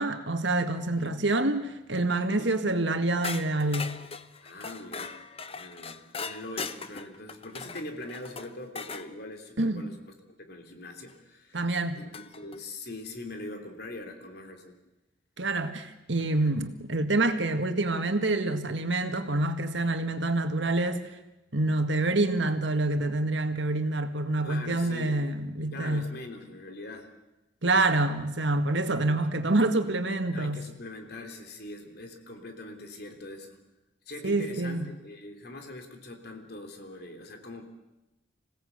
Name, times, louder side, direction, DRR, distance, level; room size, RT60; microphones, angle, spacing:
voice 1, 0.0-3.9 9.6-9.9 11.5-12.0 15.4-21.0 21.5-26.0 27.6-30.6 34.2-34.9, right 2 dB, 70° right, 7 dB, 1.9 m, -27 dB
sound 1, 3.2-9.1 11.1-11.2 12.1-12.6, left 5 dB, 30° left, 0.9 m, -39 dB
voice 2, 4.4-5.2 5.5-10.0 10.4-11.6 11.9-14.8 24.4-25.3 25.6-27.1 30.3-33.6 34.0-37.7, left 2 dB, 55° left, 4 dB, 3.2 m, -42 dB
26.5 x 17.5 x 8.1 m, 0.96 s
head